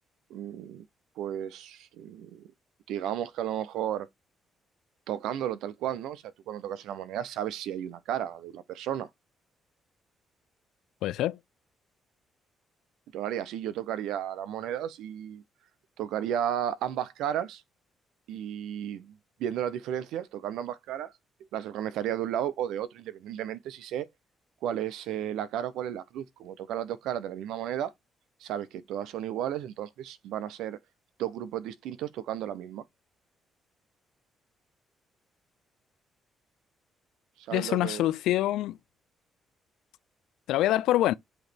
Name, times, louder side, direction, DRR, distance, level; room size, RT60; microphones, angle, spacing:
voice 1, 0.3-0.8 1.2-2.5 2.9-4.1 5.1-9.1 13.1-15.4 16.0-17.6 18.3-19.1 19.4-21.1 21.5-24.1 24.6-27.9 28.4-30.8 31.2-32.8 37.4-38.1, right 10 dB, 90° right, 0.7 m, -33 dB
voice 2, 11.0-11.4 37.5-38.8 40.5-41.1, left 15 dB, 90° left, 0.4 m, -25 dB
7.9 x 3.1 x 4.4 m
cardioid pair, 90°, 0 cm